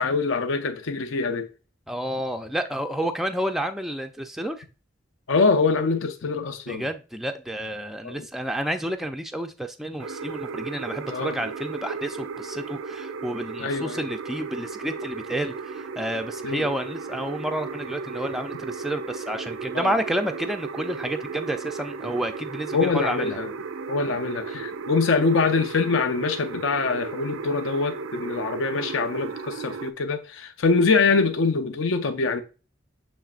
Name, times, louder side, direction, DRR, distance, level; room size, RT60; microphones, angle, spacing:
voice 1, 0.0-1.5 5.3-6.8 8.0-8.2 11.1-11.4 13.6-14.0 16.4-16.6 19.7-19.9 22.7-23.5 23.9-32.4, left 4 dB, 70° left, 0.6 m, -24 dB
voice 2, 1.9-4.6 6.7-23.4, right 1 dB, ahead, 0.4 m, -30 dB
sound 1, 10.0-29.9, right 5 dB, 75° right, 0.4 m, -35 dB
7.1 x 3.1 x 2.4 m
head